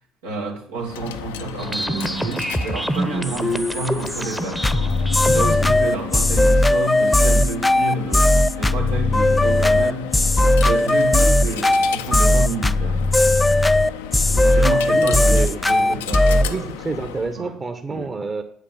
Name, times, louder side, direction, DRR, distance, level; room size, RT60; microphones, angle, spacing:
voice 1, 0.0-4.9 5.2-13.1 14.1-16.7 17.3-17.5 17.9-18.1, right 3 dB, 75° right, 0 dB, 2.2 m, -29 dB
Coin (dropping), 0.8-17.4, left 9 dB, 70° left, 0.6 m, -34 dB
sound 1, 1.6-5.6, equal, 5° right, 1.0 m, -26 dB
sound 2, 4.6-16.5, left 1 dB, 15° left, 0.5 m, -17 dB
voice 2, 5.6-6.2 14.9-15.9 16.4-18.4, right 3 dB, 30° right, 7 dB, 1.3 m, -29 dB
9.0 x 8.3 x 7.3 m, 0.64 s
figure-of-eight pair, 50°, 0 cm